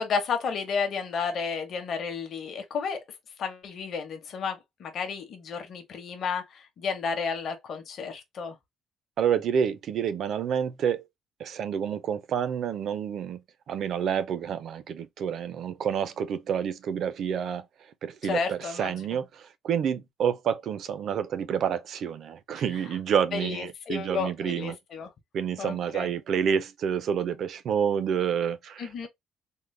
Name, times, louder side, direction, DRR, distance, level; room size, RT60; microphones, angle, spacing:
voice 1, 0.0-3.0 3.4-8.6 18.2-18.9 23.3-25.1 25.6-26.1 28.8-29.1, left 5 dB, 45° left, 0.8 m, -32 dB
voice 2, 9.2-11.0 11.4-13.4 13.7-17.7 18.0-24.8 25.3-29.1, right 8 dB, 50° right, 0.4 m, -28 dB
3.7 x 2.1 x 3.1 m
cardioid pair, 170°, 0 cm